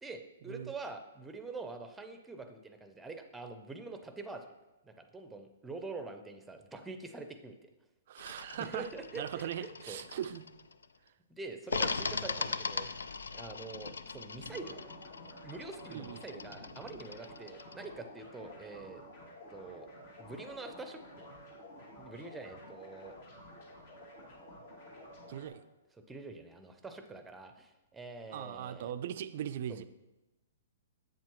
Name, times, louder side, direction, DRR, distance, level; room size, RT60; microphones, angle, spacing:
voice 1, 0.0-4.4 4.8-7.7 8.6-10.0 11.3-12.9 13.3-14.8 15.4-19.0 19.5-19.9 20.2-21.3 22.0-23.1 26.1-28.9 29.7-29.8, right 3 dB, 10° right, 7 dB, 0.6 m, -45 dB
voice 2, 8.1-10.5 15.9-16.2 25.3-25.6 28.3-29.8, right 10 dB, 55° right, 12 dB, 0.4 m, -40 dB
sound 1, 8.2-10.9 11.7-17.9, left 4 dB, 80° left, 0.3 m, -40 dB
sound 2, 14.4-25.5, left 1 dB, 60° left, 2.3 m, -51 dB
7.6 x 7.3 x 3.0 m, 1.0 s
hypercardioid pair, 125°, 0 cm